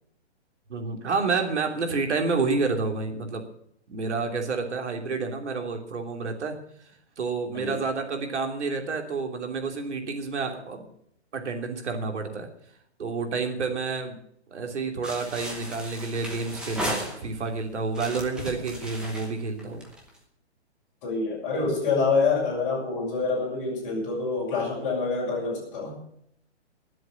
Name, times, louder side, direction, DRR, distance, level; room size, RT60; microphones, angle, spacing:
voice 1, 0.7-3.5 3.9-6.6 7.2-10.9 11.3-12.5 13.0-14.2 14.5-19.8, right 4 dB, 80° right, 4 dB, 3.2 m, -29 dB
sound 1, 15.0-17.5 17.9-20.2, equal, ahead, 1.0 m, -35 dB
voice 2, 21.0-26.0, left 4 dB, 25° left, -3 dB, 6.8 m, -26 dB
19.0 x 7.7 x 7.2 m, 0.70 s
hypercardioid pair, 170°, 34 cm